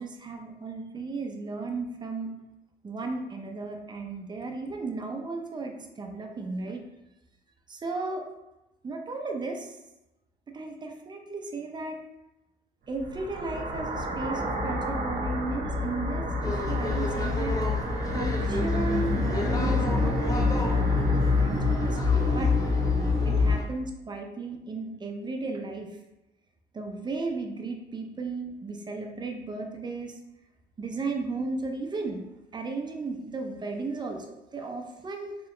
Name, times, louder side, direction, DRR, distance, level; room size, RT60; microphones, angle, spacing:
voice 1, 0.0-2.3 2.8-6.8 7.7-8.2 8.8-9.8 10.5-12.0 12.9-17.6 18.1-22.5 23.2-25.9 26.7-30.2 30.8-32.2 32.5-35.4, right 3 dB, 25° right, 3 dB, 0.5 m, -35 dB
sound 1, 13.0-23.5, left 3 dB, 55° right, 0.9 m, -26 dB
sound 2, 16.4-23.6, left 1 dB, 20° left, 0.6 m, -36 dB
3.8 x 2.9 x 3.2 m, 0.96 s
cardioid pair, 110°, 17 cm